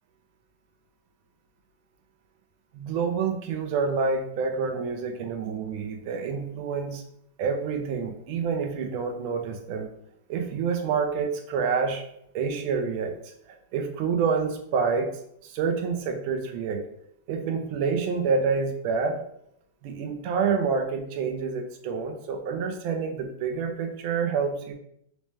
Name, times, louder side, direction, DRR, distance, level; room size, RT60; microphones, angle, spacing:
voice 1, 2.7-7.0 7.4-9.9 10.3-12.1 12.3-16.8 17.3-19.2 19.8-24.7, right 5 dB, 50° right, 5 dB, 0.7 m, -28 dB
3.2 x 3.0 x 3.3 m, 0.72 s
supercardioid pair, 140°, 0 cm